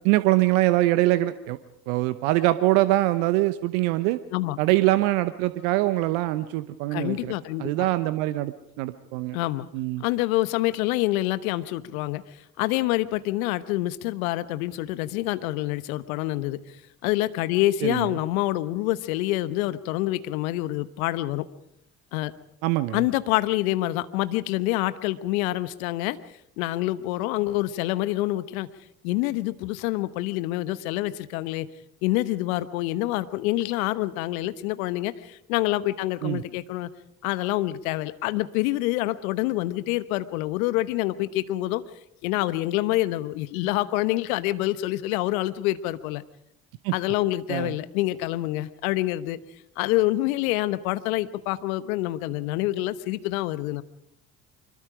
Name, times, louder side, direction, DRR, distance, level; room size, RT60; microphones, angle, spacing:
voice 1, 0.0-1.6 1.9-4.2 4.6-7.3 7.6-9.4 9.7-10.0 17.8-18.2 22.6-23.0 36.2-36.4 46.8-46.9 47.5-47.7, right 17 dB, 70° right, 13 dB, 1.0 m, -23 dB
voice 2, 6.9-7.9 9.3-9.7 10.0-16.8 17.0-21.5 22.1-22.3 22.9-26.2 26.6-28.7 29.0-31.7 32.0-36.9 37.2-41.8 42.2-46.2 46.9-49.4 49.8-53.8, left 16 dB, 75° left, 14 dB, 1.1 m, -26 dB
25.5 x 22.0 x 5.0 m, 0.78 s
hypercardioid pair, 55°, 42 cm